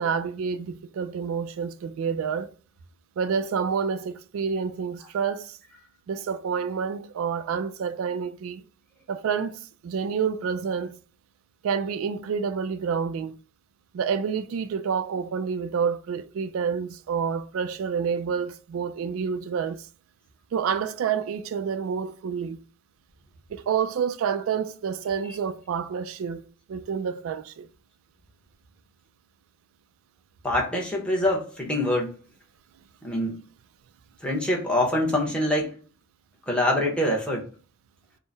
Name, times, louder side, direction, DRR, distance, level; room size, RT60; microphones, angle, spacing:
voice 1, 0.0-2.5 3.2-5.6 6.1-8.6 9.1-11.0 11.6-13.3 13.9-19.8 20.5-22.6 23.5-26.4 26.7-27.7, right 6 dB, 90° right, 0.3 m, -28 dB
voice 2, 30.4-32.1 33.0-33.4 34.2-35.7 36.5-37.5, left 1 dB, 5° left, 0.8 m, -25 dB
3.7 x 2.0 x 3.9 m
head